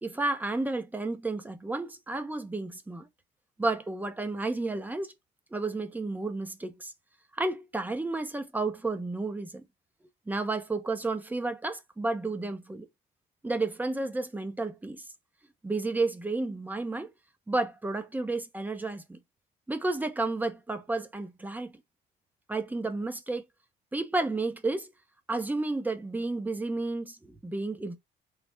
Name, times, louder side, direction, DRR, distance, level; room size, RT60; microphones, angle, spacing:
voice 1, 0.0-3.1 3.6-5.1 5.5-6.9 7.4-9.6 10.3-12.9 13.4-15.0 15.6-17.1 17.5-19.2 19.7-21.7 22.5-23.4 23.9-24.9 25.3-27.2 27.4-28.0, right 2 dB, 10° right, 0.6 m, -31 dB
3.2 x 2.1 x 3.2 m
cardioid pair, 110°, 17 cm